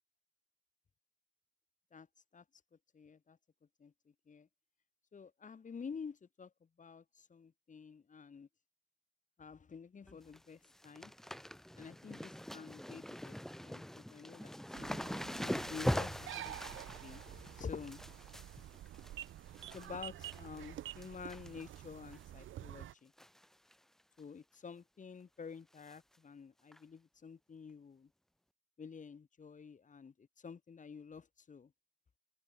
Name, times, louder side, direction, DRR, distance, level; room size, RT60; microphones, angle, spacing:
voice 1, 1.9-2.6 2.9-3.4 3.8-3.9 4.3-4.5 5.1-6.5 6.8-8.5 9.4-11.1 11.8-13.4 13.6-14.5 15.4-18.0 19.7-23.1 24.2-28.1 28.8-31.7, left 6 dB, 40° left, 4.3 m, -49 dB
sound 1, 10.1-10.4 10.6-19.9 20.2-20.6 21.0-21.8 22.1-22.2 23.2-23.5 23.7-23.8 24.2-24.3 25.9-26.0 26.7-26.8, equal, ahead, 0.6 m, -42 dB
sound 2, 14.7-22.9, right 13 dB, 75° right, 2.4 m, -49 dB
open air
cardioid pair, 90°, 20 cm